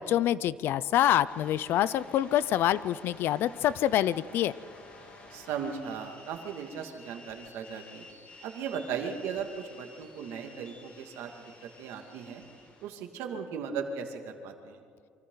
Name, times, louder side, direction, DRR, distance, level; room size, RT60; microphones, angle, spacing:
voice 1, 0.1-4.5, left 12 dB, 60° left, 18 dB, 0.5 m, -26 dB
sound 1, 1.3-12.9, left 2 dB, 30° left, 2.8 m, -51 dB
voice 2, 5.3-8.1 8.4-11.3 11.8-12.4 12.8-14.8, right 6 dB, 85° right, 3 dB, 2.3 m, -37 dB
27.5 x 24.5 x 4.0 m, 2.2 s
cardioid pair, 160°, 4 cm